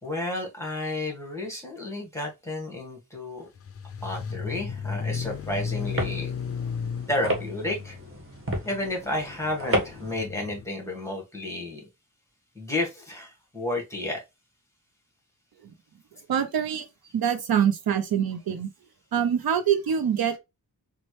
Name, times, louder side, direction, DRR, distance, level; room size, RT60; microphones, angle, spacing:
voice 1, 0.0-3.5 4.0-6.3 7.1-8.0 8.6-11.8 12.5-14.2, left 1 dB, 5° left, 1.4 m, -31 dB
sound 1, 3.6-10.7, left 6 dB, 40° left, 0.4 m, -34 dB
sound 2, 5.2-10.2, right 1 dB, 35° right, 1.4 m, -33 dB
voice 2, 16.3-16.9 17.1-18.7 19.1-20.4, right 8 dB, 70° right, 0.6 m, -24 dB
4.1 x 2.2 x 3.1 m
wide cardioid pair, 85°, 37 cm